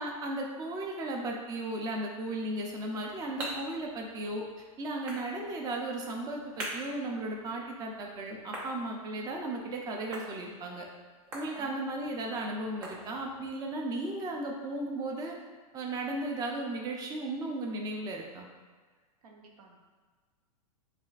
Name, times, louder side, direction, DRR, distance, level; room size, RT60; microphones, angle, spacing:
voice 1, 0.0-4.4 4.8-10.9 11.3-15.4 15.7-18.5, right 2 dB, 20° right, 0 dB, 0.5 m, -35 dB
sound 1, 2.7-13.5, right 1 dB, 65° right, 1.3 m, -46 dB
voice 2, 19.2-19.8, right 4 dB, 80° right, 0 dB, 0.9 m, -53 dB
7.1 x 2.5 x 2.4 m, 1.5 s
hypercardioid pair, 130°, 19 cm